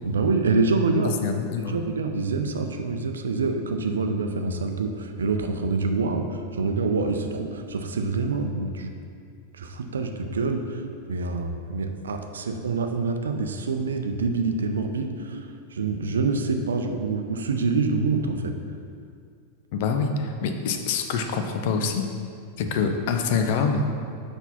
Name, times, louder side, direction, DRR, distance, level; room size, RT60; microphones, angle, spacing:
voice 1, 0.0-1.2 1.6-8.9 9.5-18.5, right 3 dB, 70° right, 6 dB, 0.5 m, -26 dB
voice 2, 1.2-1.7 19.7-22.0 22.6-23.9, left 5 dB, 50° left, 5 dB, 0.6 m, -25 dB
6.0 x 5.5 x 4.2 m, 2.3 s
figure-of-eight pair, 90°, 0 cm